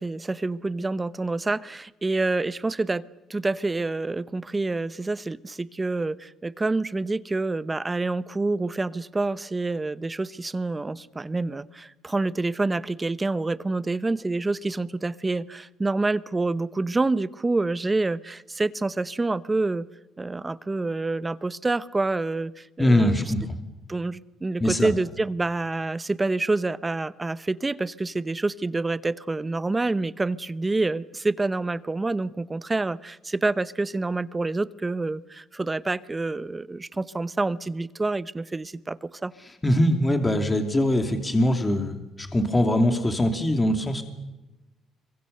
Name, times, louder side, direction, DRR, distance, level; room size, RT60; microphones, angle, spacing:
voice 1, 0.0-3.0 3.3-19.9 20.2-23.3 23.9-39.3, right 3 dB, 20° right, 0.9 m, -27 dB
voice 2, 22.8-23.4 24.6-24.9 39.6-44.0, left 1 dB, 15° left, 2.8 m, -22 dB
26.5 x 23.5 x 6.8 m
cardioid pair, 95°, 0 cm